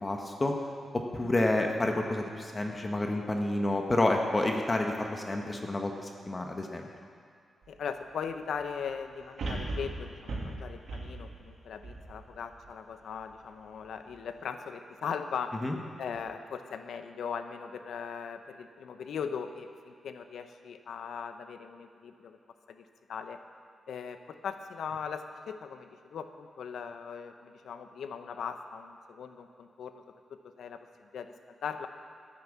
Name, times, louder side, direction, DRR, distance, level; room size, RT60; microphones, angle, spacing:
voice 1, 0.0-0.5 0.9-6.9 15.6-15.7, left 2 dB, 25° left, 2 dB, 1.2 m, -29 dB
sound 1, 7.6-7.7 9.4-12.7 13.2-13.3, right 2 dB, 70° right, 2.6 m, -37 dB
voice 2, 7.7-15.6 16.0-22.4 22.7-23.4 23.9-30.0 30.6-31.3 31.6-31.9, left 6 dB, 80° left, 8 dB, 0.9 m, -39 dB
12.5 x 10.0 x 7.4 m, 2.3 s
cardioid pair, 90°, 0 cm